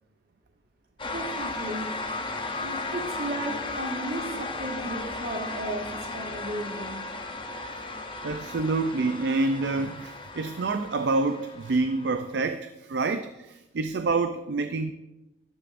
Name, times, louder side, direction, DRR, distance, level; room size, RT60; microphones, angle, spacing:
sound 1, 1.0-12.5, left 3 dB, 25° left, 0.8 m, -35 dB
voice 1, 1.1-1.9 2.6-5.9 6.1-7.0, right 1 dB, 55° right, 1 dB, 1.7 m, -34 dB
voice 2, 8.2-14.9, right 3 dB, 70° right, 8 dB, 0.4 m, -27 dB
12.5 x 10.0 x 2.6 m, 1.0 s
head